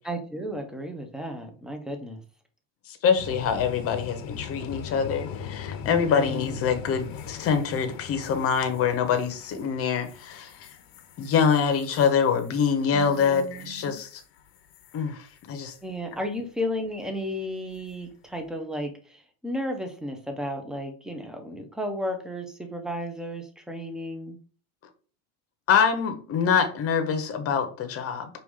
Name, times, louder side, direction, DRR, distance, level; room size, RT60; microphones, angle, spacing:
voice 1, 0.0-2.2 5.9-6.6 12.9-14.0 15.8-24.4, equal, ahead, 4 dB, 0.6 m, -34 dB
voice 2, 3.0-10.7 11.2-14.2 14.9-15.7 25.7-28.3, left 6 dB, 35° left, 7 dB, 0.8 m, -25 dB
sound 1, 3.2-15.0 15.3-15.8 17.7-18.1, left 7 dB, 65° left, 0.8 m, -41 dB
4.8 x 2.5 x 3.5 m, 0.40 s
cardioid pair, 140°, 39 cm